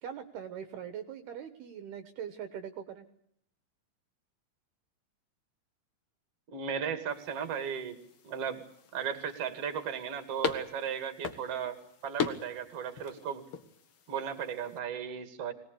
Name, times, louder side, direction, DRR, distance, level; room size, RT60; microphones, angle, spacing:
voice 1, 0.0-3.1, right 8 dB, 70° right, 9 dB, 3.0 m, -42 dB
voice 2, 6.5-8.0 8.2-8.6 8.9-11.8 12.0-13.4 14.1-15.5, right 7 dB, 40° right, 8 dB, 2.8 m, -35 dB
sound 1, 7.1-14.8, left 6 dB, 70° left, 1.3 m, -41 dB
23.5 x 20.0 x 8.5 m, 0.72 s
omnidirectional pair, 5.3 m